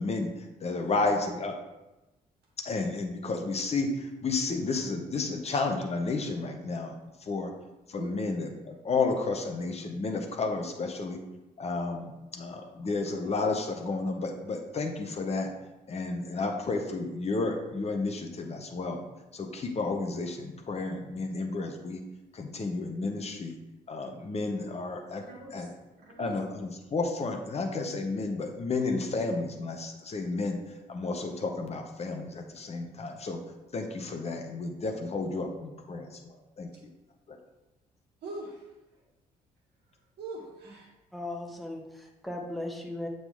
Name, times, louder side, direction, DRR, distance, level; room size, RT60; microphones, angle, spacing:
voice 1, 0.0-1.6 2.6-7.5 7.9-11.2 11.6-15.5 15.9-19.0 19.3-22.0 22.3-23.6 23.9-25.2 25.5-25.7 26.2-30.6 30.9-33.4 33.7-36.7 37.3-37.4, left 3 dB, 30° left, 4 dB, 0.9 m, -32 dB
voice 2, 25.2-25.7 25.9-26.4 38.2-39.0 40.2-40.9, right 2 dB, 55° right, -2 dB, 1.7 m, -43 dB
voice 3, 41.1-43.1, left 1 dB, ahead, 0 dB, 1.0 m, -37 dB
7.0 x 3.9 x 3.5 m, 1.0 s
figure-of-eight pair, 45°, 21 cm